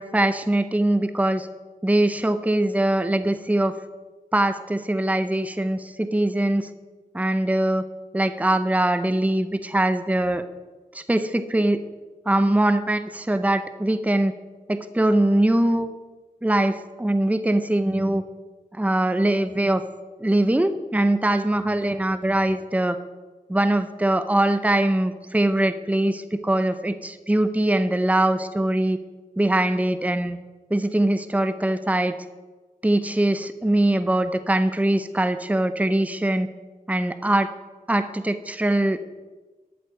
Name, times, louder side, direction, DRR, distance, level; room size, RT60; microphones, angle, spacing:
voice 1, 0.0-1.5 1.8-3.8 4.3-6.7 7.1-7.8 8.1-10.4 10.9-11.8 12.3-14.3 14.7-15.9 16.4-18.2 18.7-19.8 20.2-23.0 23.5-29.0 29.4-30.4 30.7-32.1 32.8-36.5 36.9-37.5 37.9-39.1, right 1 dB, 10° right, 11 dB, 0.8 m, -22 dB
13.5 x 8.4 x 7.8 m, 1.3 s
wide cardioid pair, 80°, 15 cm